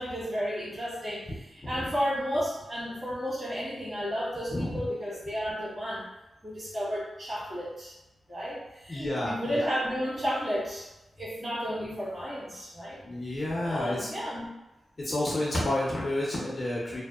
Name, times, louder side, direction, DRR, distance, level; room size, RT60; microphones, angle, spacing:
voice 1, 0.0-6.1 6.4-7.9 8.3-10.9 11.2-13.0 13.6-14.5, equal, 35° right, -9 dB, 1.4 m, -32 dB
voice 2, 4.5-4.9 8.9-9.7 13.0-14.1 15.0-17.0, left 1 dB, 40° left, -5 dB, 0.6 m, -30 dB
2.6 x 2.0 x 2.3 m, 0.98 s
cardioid pair, 80°, 0 cm